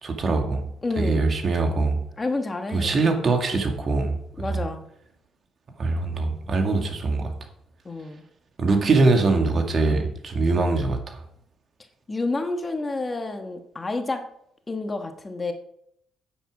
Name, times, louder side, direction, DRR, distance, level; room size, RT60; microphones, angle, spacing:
voice 1, 0.0-0.6 1.0-2.0 2.7-4.6 5.8-7.3 8.6-11.2, right 3 dB, 45° right, 4 dB, 2.0 m, -23 dB
voice 2, 0.8-1.2 2.2-2.9 4.4-4.8 7.8-8.2 12.1-14.2 14.7-15.5, left 3 dB, 25° left, 6 dB, 1.3 m, -29 dB
9.9 x 8.8 x 4.9 m, 0.72 s
cardioid pair, 90°, 0 cm